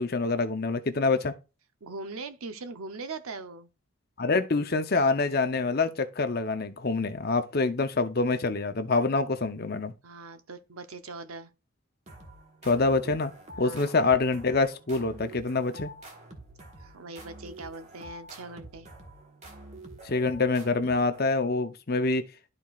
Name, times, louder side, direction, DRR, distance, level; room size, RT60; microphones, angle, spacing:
voice 1, 0.0-1.3 4.2-9.9 12.6-13.3 13.6-15.9 20.0-22.3, left 3 dB, 45° left, 0.7 m, -26 dB
voice 2, 1.8-3.7 10.0-11.5 13.6-13.9 16.8-18.9, right 3 dB, 85° right, 0.8 m, -41 dB
sound 1, 12.1-21.6, right 1 dB, 30° right, 1.2 m, -47 dB
12.5 x 4.3 x 2.4 m
head